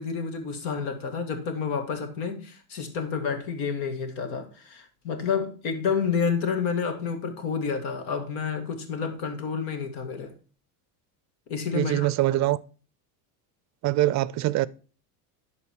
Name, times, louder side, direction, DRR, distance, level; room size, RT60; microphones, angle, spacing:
voice 1, 0.0-10.3 11.5-12.1, left 6 dB, 70° left, 2.1 m, -29 dB
voice 2, 11.7-12.6 13.8-14.7, right 15 dB, 40° right, 0.5 m, -23 dB
11.0 x 4.0 x 4.6 m
supercardioid pair, 105°, 45 cm